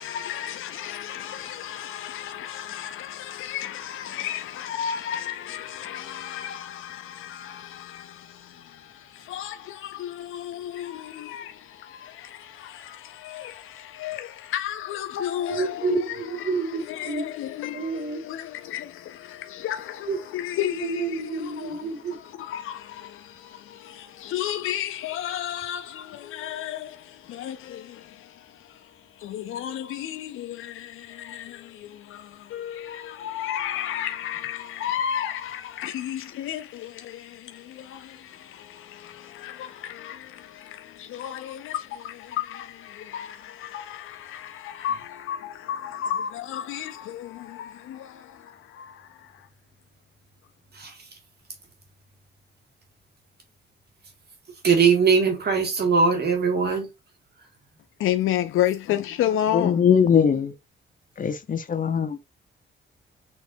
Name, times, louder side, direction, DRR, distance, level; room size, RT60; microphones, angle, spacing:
voice 1, 0.0-49.5 58.0-59.8, left 11 dB, 85° left, 0.4 m, -33 dB
voice 2, 15.5-17.2 17.7-18.2 20.1-20.2 20.7-22.2 50.7-51.2 54.6-56.9, right 5 dB, 55° right, 1.7 m, -24 dB
voice 3, 59.5-60.6 61.2-62.3, left 7 dB, 40° left, 0.7 m, -21 dB
6.3 x 3.0 x 2.6 m
cardioid pair, 105°, 21 cm